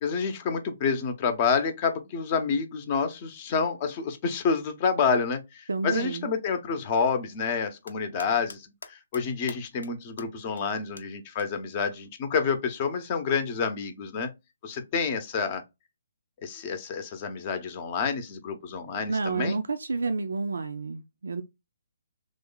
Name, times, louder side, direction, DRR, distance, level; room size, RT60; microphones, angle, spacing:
voice 1, 0.0-14.3 14.6-15.6 16.4-19.6, left 5 dB, 35° left, 0.6 m, -28 dB
voice 2, 5.7-6.3 19.1-21.4, right 3 dB, 80° right, 0.4 m, -29 dB
sound 1, 7.6-8.6 8.8-9.2 9.5-9.9 10.2-10.3 10.6-10.7 11.0-11.1 11.4-11.5 13.0-13.1, left 3 dB, 90° left, 0.6 m, -43 dB
3.2 x 2.1 x 3.8 m
figure-of-eight pair, 140°, 0 cm